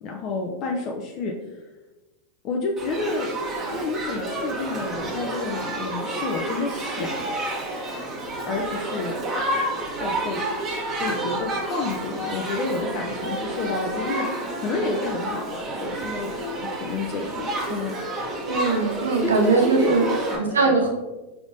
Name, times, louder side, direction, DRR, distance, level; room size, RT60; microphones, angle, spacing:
voice 1, 0.0-1.6 2.4-3.3 3.7-7.1 8.5-9.1 10.0-10.4 11.0-14.3 14.6-16.4 16.6-17.9 19.2-20.7, left 3 dB, 45° left, 0 dB, 0.5 m, -29 dB
Shout / Human group actions, 2.8-20.4, right 1 dB, 30° right, 1.2 m, -30 dB
voice 2, 18.5-20.1 20.4-20.9, right 4 dB, 85° right, 1 dB, 0.8 m, -21 dB
4.8 x 3.5 x 2.6 m, 1.1 s
hypercardioid pair, 95°, 0 cm